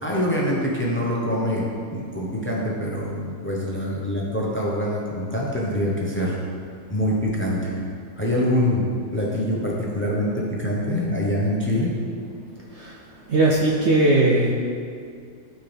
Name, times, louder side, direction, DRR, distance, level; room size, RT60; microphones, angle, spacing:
voice 1, 0.0-1.6 1.9-6.3 6.9-7.7 8.2-8.9 9.1-10.3 10.6-11.9, left 1 dB, 10° left, -4 dB, 0.6 m, -24 dB
voice 2, 13.3-14.5, right 2 dB, 65° right, -2 dB, 0.7 m, -19 dB
12.0 x 4.5 x 3.4 m, 2.2 s
omnidirectional pair, 1.9 m